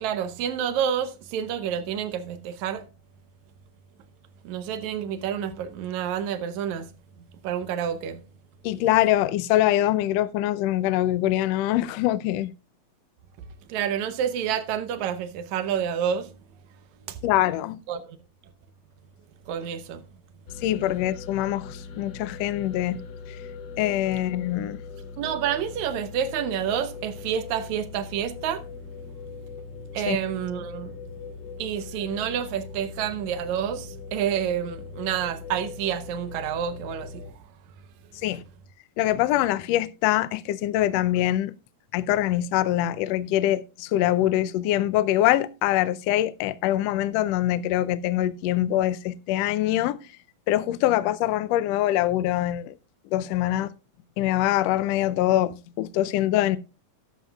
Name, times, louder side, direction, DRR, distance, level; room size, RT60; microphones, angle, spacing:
voice 1, 0.0-2.8 4.4-6.9 7.4-8.2 13.7-16.3 17.1-17.2 17.9-18.1 19.5-20.0 25.2-28.6 29.9-30.9 31.6-37.3, right 9 dB, 75° right, 2.2 m, -29 dB
voice 2, 8.6-12.5 17.2-17.8 20.6-23.0 23.8-24.8 30.1-30.2 38.2-38.4 39.0-41.5 41.9-50.0 50.5-52.7 53.1-53.7 54.2-56.6, left 13 dB, 75° left, 1.6 m, -24 dB
sound 1, 20.5-37.3, left 5 dB, 60° left, 3.1 m, -40 dB
12.5 x 11.0 x 2.3 m
omnidirectional pair, 3.4 m